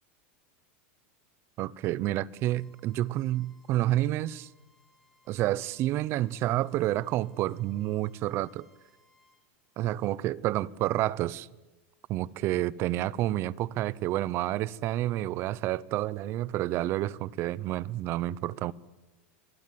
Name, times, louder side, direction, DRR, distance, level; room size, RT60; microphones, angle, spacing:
voice 1, 1.6-4.5 5.3-8.7 9.8-11.5 12.1-18.7, right 15 dB, 35° right, 0.7 m, -29 dB
Bowed string instrument, 2.3-9.4, left 1 dB, 5° left, 6.4 m, -67 dB
25.0 x 21.0 x 7.7 m
supercardioid pair, 150°, 7 cm